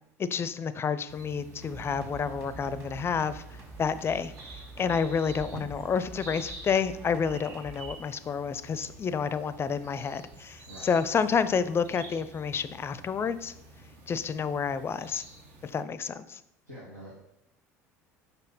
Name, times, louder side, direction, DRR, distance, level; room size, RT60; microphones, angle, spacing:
voice 1, 0.2-3.4 3.8-4.3 4.8-13.5 14.1-15.2 15.6-16.4, left 6 dB, 30° left, 14 dB, 0.5 m, -29 dB
sound 1, 1.1-15.8, right 1 dB, 65° right, 1.3 m, -48 dB
sound 2, 1.6-7.9 8.3-8.4, right 2 dB, 25° right, 1.7 m, -47 dB
voice 2, 16.6-17.1, equal, 85° right, -7 dB, 2.1 m, -45 dB
6.3 x 5.3 x 4.1 m, 0.78 s
figure-of-eight pair, 65°, 9 cm